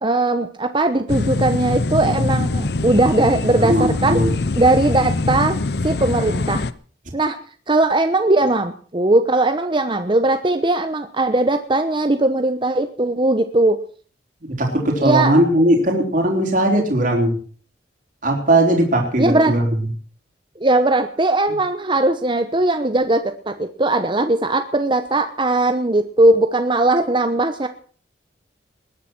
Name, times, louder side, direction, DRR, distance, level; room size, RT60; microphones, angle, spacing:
voice 1, 0.0-4.2 4.6-5.6 5.8-6.6 7.1-7.4 7.7-13.8 15.0-15.3 19.2-19.5 20.6-27.7, right 2 dB, 30° right, 7 dB, 1.0 m, -19 dB
sound 1, 1.1-6.7, left 2 dB, 65° left, 0.8 m, -23 dB
voice 2, 3.6-4.3 14.6-17.4 18.2-19.7, right 1 dB, 50° right, 1 dB, 3.7 m, -18 dB
20.5 x 10.0 x 6.2 m, 0.43 s
head